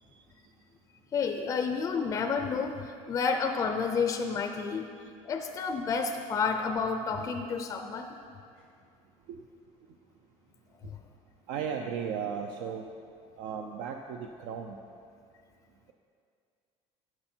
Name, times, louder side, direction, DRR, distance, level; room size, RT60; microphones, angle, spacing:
voice 1, 1.1-4.9 5.2-8.1 10.8-11.0, left 5 dB, 25° left, 6 dB, 0.5 m, -30 dB
voice 2, 11.5-12.8 13.4-14.8, right 7 dB, 70° right, 3 dB, 0.7 m, -35 dB
13.0 x 8.8 x 4.4 m, 2.3 s
cardioid pair, 170°, 13 cm